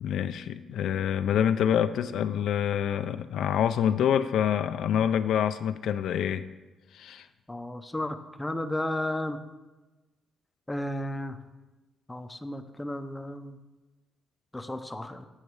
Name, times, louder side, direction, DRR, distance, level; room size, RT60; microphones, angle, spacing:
voice 1, 0.0-6.5 6.9-7.3, left 9 dB, 80° left, 11 dB, 0.3 m, -26 dB
voice 2, 7.5-9.4 10.7-11.4 12.1-13.6 14.5-15.3, left 1 dB, 10° left, 8 dB, 0.6 m, -33 dB
8.5 x 6.5 x 4.7 m, 1.1 s
cardioid pair, 115°, 0 cm